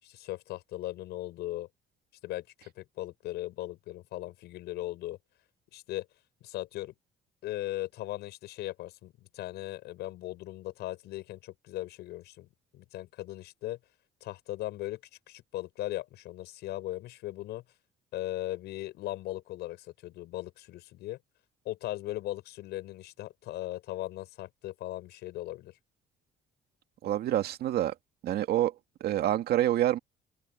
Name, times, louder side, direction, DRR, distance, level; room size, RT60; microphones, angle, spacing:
voice 1, 0.0-1.7 2.2-5.2 5.7-6.1 6.4-6.9 7.4-12.5 12.7-13.8 14.2-15.0 15.3-17.6 18.1-21.2 21.6-25.7, left 16 dB, 80° left, 6.8 m, -38 dB
voice 2, 27.0-27.9 28.2-28.7 29.0-30.0, right 13 dB, 70° right, 2.0 m, -27 dB
cardioid pair, 110°, 17 cm